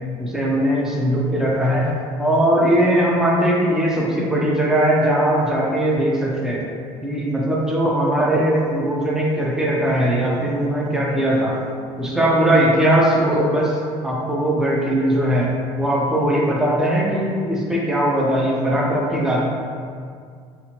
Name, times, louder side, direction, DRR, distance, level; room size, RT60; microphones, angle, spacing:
voice 1, 0.2-6.6 7.0-11.6 12.0-13.8 14.0-19.5, right 1 dB, 5° right, -3 dB, 0.4 m, -19 dB
2.8 x 2.4 x 2.8 m, 2.2 s
cardioid pair, 135°, 14 cm